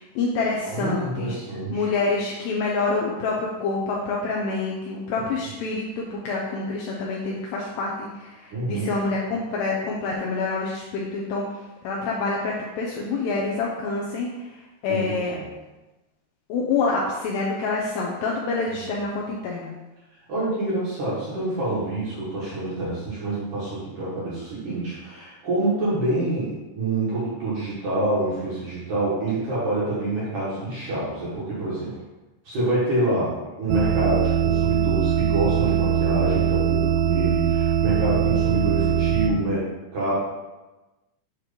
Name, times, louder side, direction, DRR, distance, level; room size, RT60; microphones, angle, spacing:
voice 1, 0.0-1.4 1.7-15.4 16.5-19.8 38.3-38.4, left 3 dB, 80° left, -3 dB, 2.5 m, -27 dB
voice 2, 0.7-1.8 8.5-8.9 14.9-15.5 18.7-18.9 20.3-31.9 32.4-40.2, right 1 dB, 55° right, -9 dB, 2.4 m, -27 dB
sound 1, 33.7-39.3, right 9 dB, 85° right, 2.8 m, -21 dB
8.9 x 3.0 x 5.1 m, 1.1 s
omnidirectional pair, 5.6 m